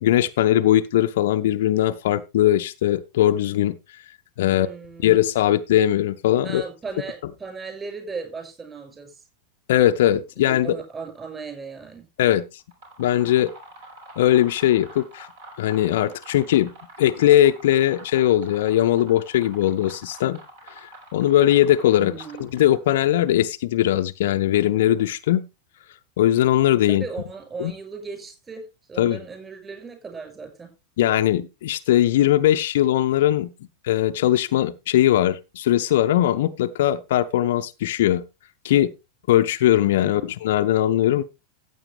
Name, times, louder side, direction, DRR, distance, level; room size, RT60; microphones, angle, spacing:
voice 1, 0.0-3.7 4.4-4.7 5.0-6.6 9.7-10.8 12.2-12.4 13.0-13.5 14.2-15.3 15.6-16.7 17.0-20.4 21.1-25.4 26.2-27.0 27.6-27.7 29.0-29.2 31.0-33.5 33.8-38.2 38.6-38.9 39.3-41.2, left 12 dB, 55° left, 0.6 m, -20 dB
voice 2, 4.5-5.2 6.4-9.2 10.4-12.0 22.0-22.5 26.9-30.7 40.0-40.3, right 4 dB, 20° right, 6.2 m, -37 dB
sound 1, 12.6-22.9, right 1 dB, 55° right, 4.9 m, -46 dB
14.5 x 8.6 x 3.4 m
figure-of-eight pair, 90°, 0 cm